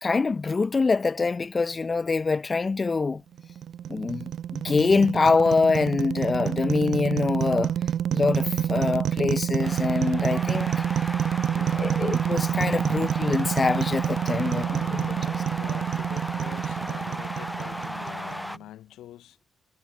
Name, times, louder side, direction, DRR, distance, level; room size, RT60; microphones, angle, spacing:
voice 1, 0.0-3.2 3.9-7.7 8.1-10.7 11.5-15.1, left 4 dB, 30° left, 0.4 m, -24 dB
sound 1, 3.4-18.6, right 9 dB, 65° right, 0.3 m, -28 dB
sound 2, 9.6-18.6, equal, ahead, 1.1 m, -36 dB
voice 2, 11.5-12.4 14.4-19.4, left 13 dB, 85° left, 1.0 m, -45 dB
cardioid pair, 90°, 0 cm